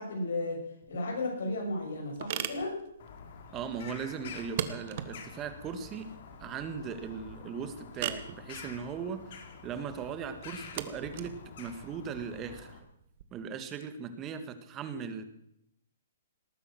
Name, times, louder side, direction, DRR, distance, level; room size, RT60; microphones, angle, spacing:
voice 1, 0.0-2.8, left 2 dB, 75° left, 2 dB, 6.4 m, -34 dB
sound 1, 0.8-13.2, right 10 dB, 50° right, 1.4 m, -42 dB
Bird vocalization bird call bird song, 3.0-12.8, left 5 dB, 55° left, 2.8 m, -48 dB
voice 2, 3.5-6.1 6.4-12.8 13.3-15.2, right 6 dB, 25° right, 10 dB, 1.6 m, -39 dB
19.0 x 9.0 x 7.8 m, 0.77 s
hypercardioid pair, 140°, 0 cm